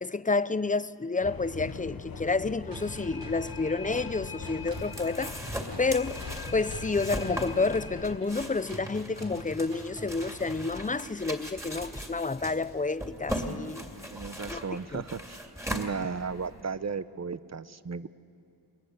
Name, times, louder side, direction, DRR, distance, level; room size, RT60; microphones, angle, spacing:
voice 1, 0.0-5.4 5.8-6.2 6.5-13.8 14.5-14.6 14.9-15.0, left 3 dB, 20° left, 0.5 m, -29 dB
sound 1, 1.2-8.2, left 5 dB, 55° left, 0.9 m, -41 dB
sound 2, 2.7-10.7, right 1 dB, 80° right, 4.5 m, -45 dB
sound 3, 4.1-16.6, equal, 5° right, 2.5 m, -39 dB
voice 2, 14.1-18.1, right 5 dB, 40° right, 0.7 m, -35 dB
28.5 x 21.5 x 8.1 m
wide cardioid pair, 75°, 42 cm